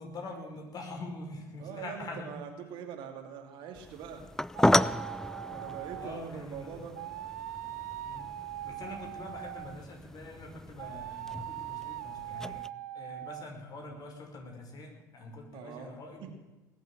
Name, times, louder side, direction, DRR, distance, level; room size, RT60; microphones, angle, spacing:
voice 1, 0.0-2.3 6.0-6.8 8.0-8.3 8.6-12.7 12.9-16.3, left 2 dB, 45° left, 2 dB, 5.5 m, -44 dB
voice 2, 1.6-4.3 5.5-6.9 15.5-16.3, right 7 dB, 60° right, 4 dB, 2.6 m, -43 dB
sound 1, 3.8-12.7, left 1 dB, 5° left, 0.4 m, -34 dB
sound 2, 4.5-6.3 6.9-9.8 10.8-13.4, right 13 dB, 80° right, 0.6 m, -41 dB
20.0 x 8.3 x 8.8 m, 1.1 s
hypercardioid pair, 65°, 9 cm